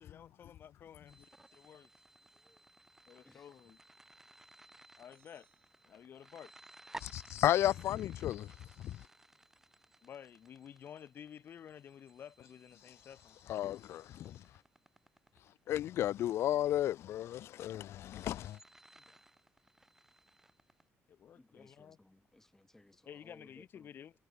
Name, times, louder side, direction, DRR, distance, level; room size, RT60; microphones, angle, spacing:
voice 1, 0.0-1.9 3.1-3.8 5.0-5.5 5.9-6.5 7.9-8.0 10.0-13.4 15.6-15.8 18.9-19.2 21.1-22.0 23.1-24.1, left 9 dB, 45° left, 4.3 m, -53 dB
sound 1, 1.1-20.8, right 1 dB, 10° right, 1.2 m, -58 dB
voice 2, 2.3-2.7 3.2-3.7 5.8-6.0 21.3-23.9, left 1 dB, 10° left, 4.6 m, -63 dB
sound 2, 5.1-6.7, right 10 dB, 55° right, 7.0 m, -74 dB
voice 3, 7.0-8.5 8.8-9.0 13.5-14.4 15.7-18.6, left 12 dB, 60° left, 0.4 m, -33 dB
cardioid pair, 165°, 5 cm